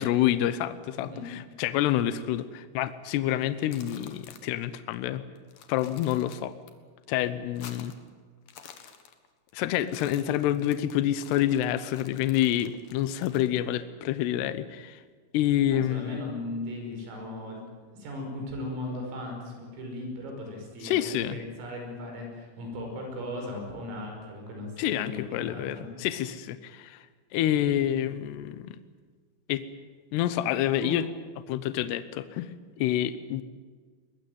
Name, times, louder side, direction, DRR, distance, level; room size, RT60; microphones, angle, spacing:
voice 1, 0.0-5.2 5.7-6.5 7.1-7.9 9.5-15.0 15.3-16.3 20.8-21.4 24.8-27.1 27.3-28.8 29.5-29.7 30.1-31.1 31.5-32.5 32.8-33.4, left 12 dB, 85° left, 12 dB, 2.4 m, -28 dB
voice 2, 1.0-1.3 15.7-17.6 17.9-25.9 30.8-31.0, left 1 dB, 80° right, 2 dB, 8.1 m, -37 dB
sound 1, 3.4-4.6 4.9-5.0 5.4-6.7 7.0-8.1 8.4-9.5 9.8-13.6, left 8 dB, 60° left, 2.5 m, -50 dB
22.0 x 21.5 x 9.3 m, 1.5 s
omnidirectional pair, 5.9 m